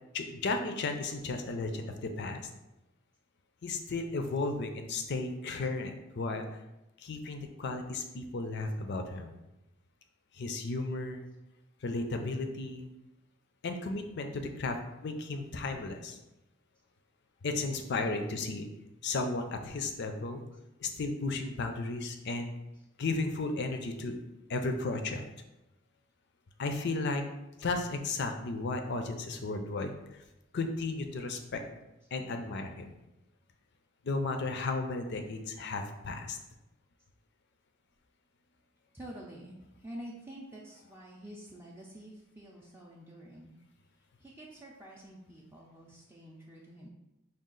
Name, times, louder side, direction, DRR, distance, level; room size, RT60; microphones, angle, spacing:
voice 1, 0.1-2.5 3.6-6.4 7.0-9.3 10.3-11.3 11.8-12.9 13.6-14.8 15.0-16.2 17.4-18.7 19.0-20.4 20.8-22.5 23.0-24.2 24.5-25.2 26.6-27.2 27.6-29.9 30.5-31.6 32.1-33.0 34.0-36.4, left 3 dB, 55° left, 6 dB, 0.5 m, -34 dB
voice 2, 38.9-43.5 44.2-46.9, right 1 dB, 10° right, -4 dB, 0.4 m, -48 dB
4.9 x 2.4 x 3.8 m, 0.94 s
head